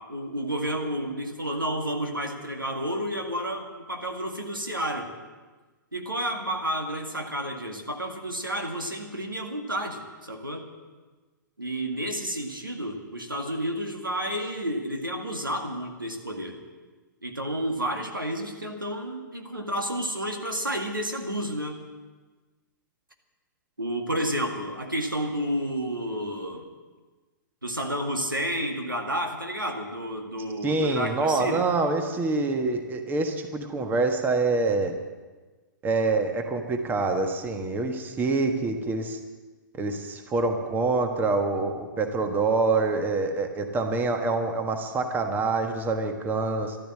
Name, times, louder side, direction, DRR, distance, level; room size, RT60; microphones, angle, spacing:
voice 1, 0.0-5.1 5.9-10.6 11.6-16.6 17.2-21.8 23.8-26.7 27.6-31.7, equal, 90° right, 3 dB, 2.0 m, -31 dB
voice 2, 30.6-35.0 35.8-39.2 39.8-46.8, right 3 dB, 15° right, 6 dB, 1.4 m, -26 dB
14.0 x 12.5 x 7.6 m, 1.3 s
figure-of-eight pair, 110°, 11 cm